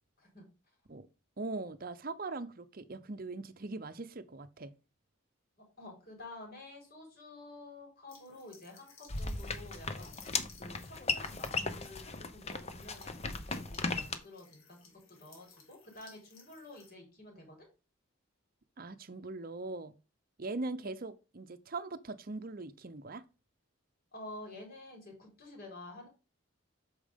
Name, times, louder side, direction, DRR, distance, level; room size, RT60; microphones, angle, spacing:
voice 1, 1.4-4.7 18.8-19.9 20.4-23.2, right 3 dB, 45° right, 0.7 m, -41 dB
voice 2, 5.8-10.2 10.6-14.8 15.1-17.7 24.1-26.1, left 2 dB, 45° left, 4.5 m, -50 dB
sound 1, 8.1-16.9, left 5 dB, 75° left, 2.4 m, -60 dB
sound 2, 9.1-14.2, left 4 dB, 30° left, 0.8 m, -37 dB
8.6 x 6.3 x 3.6 m
head